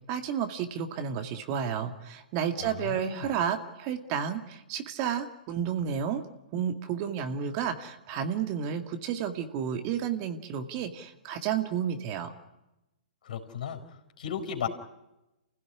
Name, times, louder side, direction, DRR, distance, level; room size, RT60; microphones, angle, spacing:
voice 1, 0.1-6.2 6.5-12.3, right 8 dB, 40° right, 7 dB, 2.2 m, -31 dB
voice 2, 2.6-3.3 13.2-13.8 14.2-14.7, left 8 dB, 65° left, 5 dB, 4.7 m, -35 dB
29.5 x 16.0 x 9.8 m, 0.96 s
hypercardioid pair, 120°, 5 cm